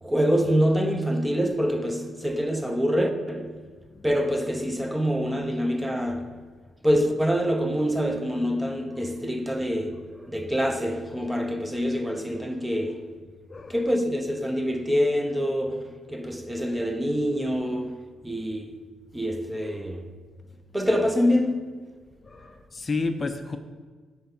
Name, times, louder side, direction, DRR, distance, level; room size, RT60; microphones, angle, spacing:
voice 1, 0.0-3.6 4.0-6.4 6.8-13.1 13.7-18.9 19.1-20.1 20.7-21.8 22.4-22.6, equal, 10° right, 0.7 m, -26 dB
voice 2, 13.5-13.9 22.2-23.6, left 3 dB, 30° left, 0.5 m, -31 dB
8.4 x 4.4 x 5.5 m
cardioid pair, 90°, 0 cm